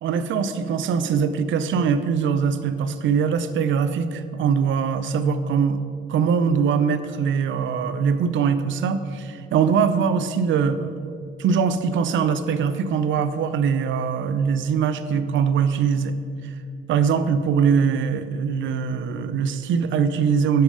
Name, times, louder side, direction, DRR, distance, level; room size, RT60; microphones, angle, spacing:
voice 1, 0.0-5.8 6.1-16.2 16.9-20.6, right 6 dB, 75° right, 11 dB, 0.6 m, -22 dB
10.5 x 6.2 x 5.0 m, 2.5 s
cardioid pair, 90°, 20 cm